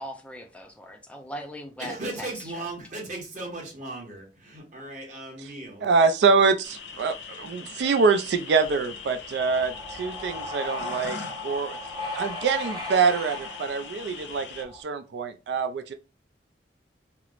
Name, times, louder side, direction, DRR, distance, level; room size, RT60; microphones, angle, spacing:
voice 1, 0.0-2.6, equal, 5° left, 0.4 m, -40 dB
voice 2, 1.8-5.9, right 2 dB, 45° right, 1.1 m, -37 dB
voice 3, 5.8-11.8 12.1-15.9, right 4 dB, 65° right, 0.3 m, -25 dB
sound 1, 6.6-14.6, left 6 dB, 75° left, 0.5 m, -41 dB
sound 2, 8.6-14.8, left 2 dB, 25° right, 0.8 m, -37 dB
4.4 x 2.0 x 2.4 m
head